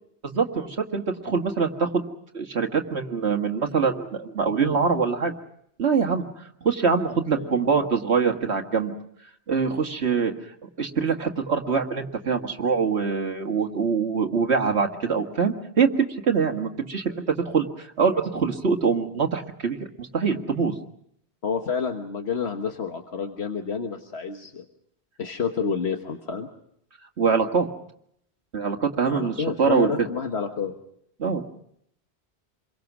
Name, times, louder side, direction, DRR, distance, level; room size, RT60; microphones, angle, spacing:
voice 1, 0.2-1.9 2.3-5.3 5.8-6.3 6.6-8.9 9.5-10.3 10.8-20.8 27.2-27.7 28.5-29.9 31.2-31.4, right 5 dB, 85° right, 4 dB, 2.1 m, -24 dB
voice 2, 7.3-7.9 21.4-24.6 25.2-26.5 29.1-30.7, left 6 dB, 75° left, 4 dB, 1.6 m, -29 dB
28.0 x 23.0 x 6.1 m, 0.72 s
omnidirectional pair, 1.1 m